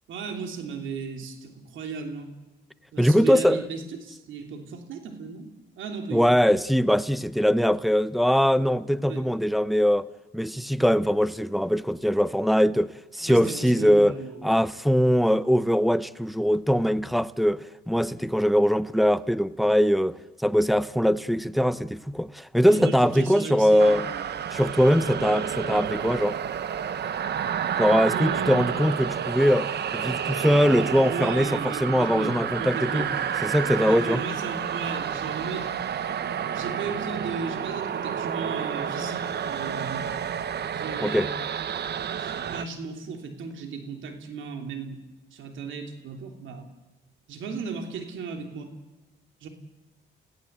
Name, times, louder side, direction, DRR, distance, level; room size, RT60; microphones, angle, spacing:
voice 1, 0.1-2.3 2.9-5.5 5.8-6.2 9.0-9.2 13.2-14.5 22.6-24.3 28.1-28.8 31.1-33.1 33.8-35.7 36.5-40.1 40.7-41.3 42.2-45.0 45.3-46.7 47.3-48.7 49.4-49.5, right 5 dB, 75° right, 3.1 m, -36 dB
voice 2, 3.0-3.7 6.1-10.0 10.3-14.2 14.4-24.1 24.5-26.4 27.8-33.1 33.4-34.2 41.0-41.3, equal, ahead, 0.7 m, -22 dB
sound 1, 23.8-42.6, right 8 dB, 55° right, 1.1 m, -30 dB
30.0 x 16.5 x 8.1 m
cardioid pair, 90°, 20 cm